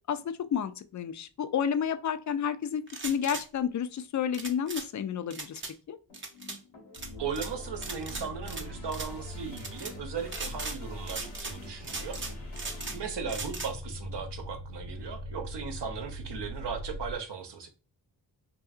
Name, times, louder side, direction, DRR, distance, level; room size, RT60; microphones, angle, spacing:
voice 1, 0.1-5.6 5.9-6.0, left 8 dB, 40° left, 0.4 m, -31 dB
sound 1, 2.9-3.4 4.3-4.9 5.3-5.7 6.1-6.6 6.9-7.5 7.8-8.6 8.9-9.1 9.6-9.9 10.3-10.8 11.1-11.6 11.8-13.0 13.3-13.7, right 3 dB, 25° right, 0.6 m, -38 dB
sound 2, 6.1-13.0, left 2 dB, 80° left, 1.2 m, -49 dB
sound 3, 7.0-17.2, equal, 55° left, 0.8 m, -42 dB
voice 2, 7.2-12.2 12.9-17.7, right 6 dB, 60° right, 0.8 m, -37 dB
2.7 x 2.6 x 2.4 m
cardioid pair, 45°, 46 cm